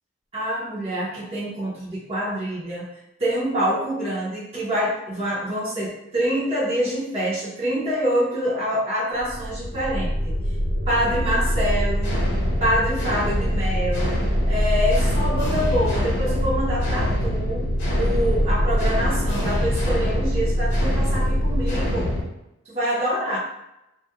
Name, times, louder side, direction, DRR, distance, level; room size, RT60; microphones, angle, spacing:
voice 1, 0.3-2.9 3.2-10.4 10.9-12.2 12.6-14.2 14.4-17.7 17.9-22.1 22.7-23.4, equal, 30° right, -8 dB, 0.5 m, -26 dB
sound 1, 9.2-22.2, equal, 55° left, 0.7 m, -23 dB
2.2 x 2.0 x 2.7 m, 0.90 s
head